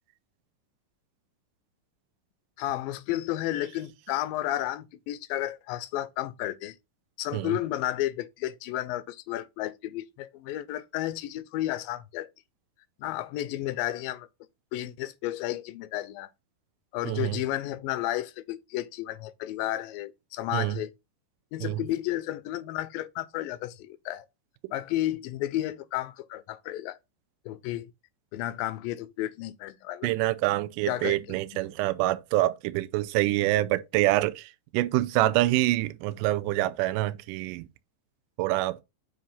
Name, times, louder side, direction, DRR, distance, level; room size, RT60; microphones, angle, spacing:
voice 1, 2.6-6.8 7.2-12.3 13.0-14.3 14.7-16.3 16.9-20.9 21.5-24.3 24.7-27.0 27.5-27.9 28.3-30.1 30.9-31.4, left 14 dB, 80° left, 2.2 m, -32 dB
voice 2, 17.1-17.4 20.5-20.8 21.6-21.8 30.0-37.7 38.4-38.8, right 17 dB, 80° right, 1.9 m, -26 dB
7.4 x 2.7 x 5.4 m
omnidirectional pair, 4.1 m